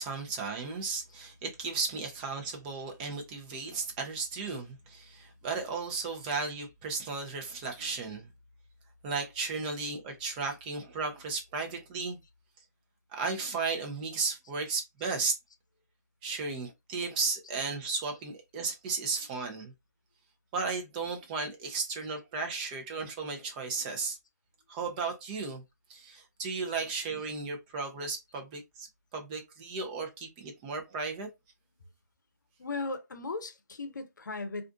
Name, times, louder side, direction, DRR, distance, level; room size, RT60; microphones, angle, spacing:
voice 1, 0.0-8.3 9.0-12.2 13.1-15.4 16.2-19.7 20.5-24.2 24.7-25.6 25.9-28.9 29.1-31.3, right 4 dB, 25° right, 0.6 m, -35 dB
voice 2, 32.6-34.7, left 3 dB, 90° left, 0.6 m, -37 dB
2.5 x 2.4 x 2.3 m
hypercardioid pair, 150°, 10 cm